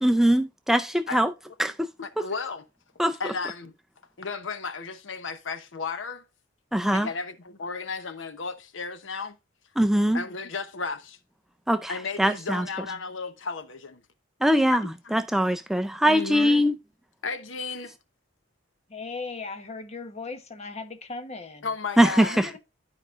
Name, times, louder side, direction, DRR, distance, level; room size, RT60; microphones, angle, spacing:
voice 1, 0.0-1.3 1.6-1.7 3.0-3.2 6.7-7.1 9.8-10.2 11.7-11.9 12.2-12.7 14.4-16.7 22.0-22.5, equal, ahead, 0.3 m, -22 dB
voice 2, 2.0-2.6 3.2-3.7 4.2-6.2 6.9-9.4 10.1-11.2 11.9-14.0 14.7-14.8 16.0-16.6 17.2-17.9 21.6-22.4, left 4 dB, 75° left, 0.9 m, -34 dB
voice 3, 18.9-21.7 22.3-22.6, left 3 dB, 35° left, 1.0 m, -37 dB
12.5 x 4.9 x 2.4 m
head